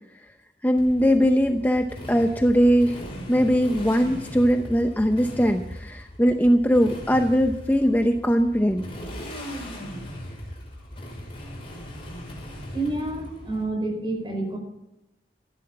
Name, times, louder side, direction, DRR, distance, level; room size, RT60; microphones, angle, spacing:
voice 1, 0.6-3.0 3.3-8.9, equal, 10° left, 5 dB, 0.7 m, -20 dB
Motorcycle, 0.8-13.6, equal, 35° left, 5.8 m, -38 dB
voice 2, 12.7-14.6, right 2 dB, 30° right, 3 dB, 4.7 m, -28 dB
14.5 x 11.5 x 5.8 m, 0.90 s
head